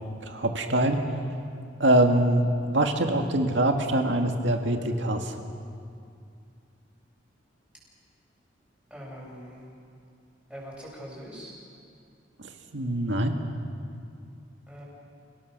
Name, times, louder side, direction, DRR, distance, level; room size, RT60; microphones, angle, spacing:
voice 1, 0.3-1.0 1.8-5.4 12.4-13.3, right 1 dB, 80° right, 4 dB, 2.1 m, -24 dB
voice 2, 8.9-9.6 10.5-11.5 14.7-14.8, equal, 5° right, -4 dB, 7.3 m, -42 dB
30.0 x 18.0 x 6.8 m, 2.4 s
head